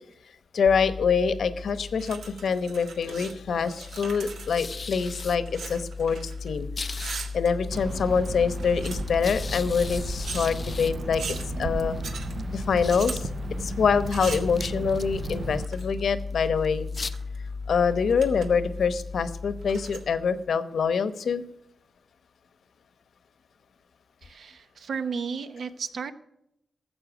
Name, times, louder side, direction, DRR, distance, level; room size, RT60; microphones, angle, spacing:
voice 1, 0.5-6.7 7.3-11.2 11.6-11.9 12.5-13.3 13.6-16.9 17.7-21.4, left 6 dB, 70° left, 13 dB, 0.9 m, -25 dB
sound 1, 0.7-20.6, left 4 dB, 35° left, 0.4 m, -36 dB
sound 2, 2.0-3.3 3.6-6.5 6.8-8.0 8.5-9.3 10.2-10.5 11.2-11.5 12.0-12.3 12.9-13.2 14.1-14.6 15.6-16.0 16.7-17.4 17.7-17.8 18.1-18.5 18.8-18.9 19.6-20.0, right 5 dB, 90° right, 1.7 m, -40 dB
Water / Drip, 7.7-15.7, right 4 dB, 45° right, 0.4 m, -36 dB
voice 2, 24.2-26.1, right 5 dB, 70° right, 11 dB, 0.9 m, -33 dB
14.0 x 7.8 x 6.0 m, 0.82 s
wide cardioid pair, 125°, 0 cm